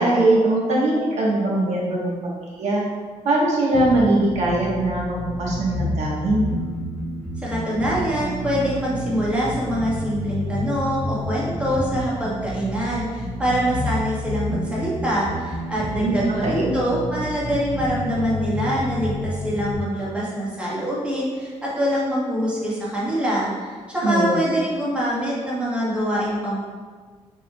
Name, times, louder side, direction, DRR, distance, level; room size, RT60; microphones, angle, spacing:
voice 1, 0.0-2.8 3.2-6.4 16.0-16.7 24.0-24.4, right 2 dB, 75° right, -4 dB, 1.1 m, -21 dB
sound 1, 3.7-19.7, equal, 15° left, 1.3 m, -29 dB
voice 2, 7.4-26.6, equal, 10° right, -7 dB, 1.3 m, -24 dB
6.6 x 3.6 x 2.2 m, 1.5 s
cardioid pair, 120°, 12 cm